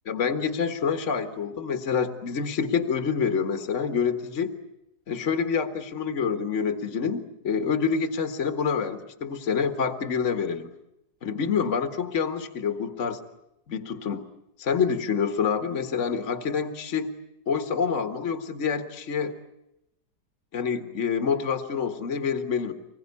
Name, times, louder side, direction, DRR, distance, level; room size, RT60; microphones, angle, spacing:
voice 1, 0.0-4.5 5.1-10.7 11.2-13.2 13.7-14.2 14.6-17.1 17.5-19.4 20.5-22.7, left 6 dB, 50° left, 7 dB, 1.8 m, -27 dB
25.5 x 21.5 x 9.7 m, 0.88 s
omnidirectional pair, 1.7 m